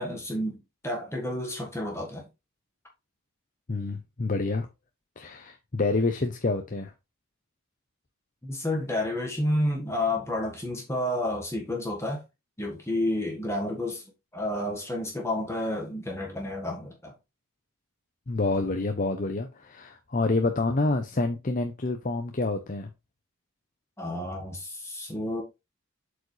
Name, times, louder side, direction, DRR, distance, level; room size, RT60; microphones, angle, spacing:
voice 1, 0.0-2.3 8.4-12.2 12.6-14.0 14.3-17.1 24.0-25.4, left 1 dB, 15° left, 1.5 m, -30 dB
voice 2, 3.7-4.7 5.2-6.9 18.3-22.9, left 3 dB, 40° left, 0.7 m, -28 dB
7.9 x 4.9 x 3.2 m
head